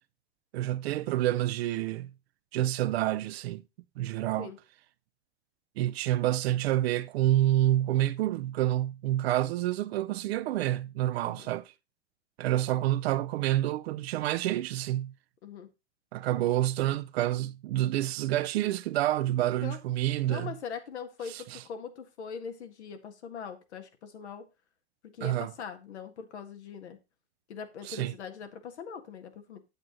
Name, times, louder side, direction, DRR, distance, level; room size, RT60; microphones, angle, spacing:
voice 1, 0.5-2.1 2.5-3.6 4.0-4.5 5.8-11.7 12.4-15.1 16.1-20.5 21.3-21.6 25.2-25.5 27.8-28.1, right 14 dB, 65° right, 0.6 m, -28 dB
voice 2, 11.2-11.5 15.4-15.7 19.6-19.8 20.3-24.4 25.0-27.0 27.5-29.6, left 6 dB, 80° left, 1.8 m, -41 dB
8.1 x 7.6 x 3.9 m
hypercardioid pair, 110°, 33 cm